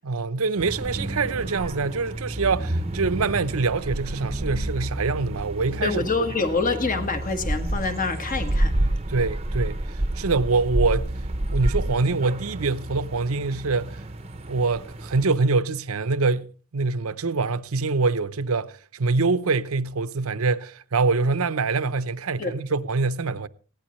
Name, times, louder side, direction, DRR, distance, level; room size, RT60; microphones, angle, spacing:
voice 1, 0.0-6.1 9.1-11.1 11.5-14.0 14.5-23.5, right 4 dB, 75° right, 0.8 m, -25 dB
sound 1, 0.6-15.2, right 1 dB, 30° right, 0.8 m, -29 dB
voice 2, 5.8-8.8 22.4-22.5, left 4 dB, 40° left, 1.7 m, -26 dB
20.0 x 16.0 x 3.2 m
head